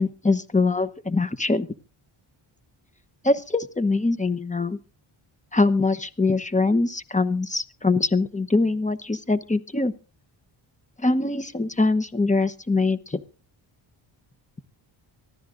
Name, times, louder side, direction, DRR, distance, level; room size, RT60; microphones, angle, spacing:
voice 1, 0.0-1.7 3.2-4.8 5.5-9.9 11.0-13.2, left 3 dB, 15° left, 13 dB, 0.9 m, -23 dB
23.5 x 14.5 x 2.6 m, 0.35 s
cardioid pair, 85°, 50 cm